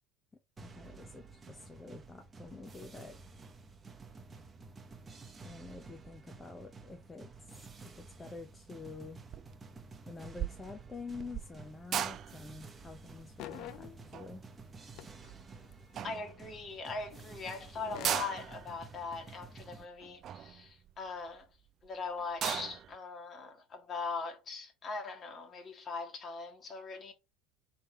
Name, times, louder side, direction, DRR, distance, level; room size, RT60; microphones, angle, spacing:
voice 1, 0.6-3.2 5.4-7.9 8.2-9.2 10.1-14.4, left 4 dB, 20° left, 0.6 m, -48 dB
sound 1, 0.6-19.9, right 4 dB, 25° right, 1.0 m, -52 dB
sound 2, 9.3-9.6 9.9-15.5 15.9-16.7 17.2-17.3 17.4-17.5 17.8-21.4 21.9-22.0 22.2-23.0, right 10 dB, 45° right, 0.4 m, -39 dB
sound 3, 11.6-11.7 11.9-12.7 12.9-14.5 14.9-16.1 17.1-18.3, left 13 dB, 60° left, 0.5 m, -49 dB
voice 2, 16.0-21.5 21.8-27.1, left 4 dB, 40° left, 1.4 m, -41 dB
3.4 x 3.3 x 4.2 m
hypercardioid pair, 80°, 0 cm